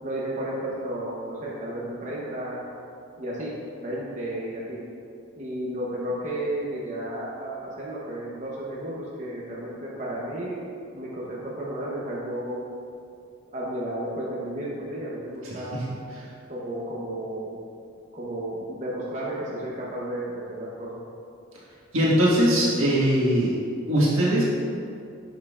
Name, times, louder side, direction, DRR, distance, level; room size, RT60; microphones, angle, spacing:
voice 1, 0.0-2.6 3.2-3.5 3.8-4.8 5.4-10.6 10.9-12.6 13.5-15.8 16.5-17.6 18.1-21.0, right 1 dB, 35° right, -6 dB, 0.9 m, -33 dB
voice 2, 21.9-23.5 23.9-24.4, equal, 80° right, -6 dB, 1.6 m, -20 dB
10.0 x 5.4 x 2.4 m, 2.5 s
head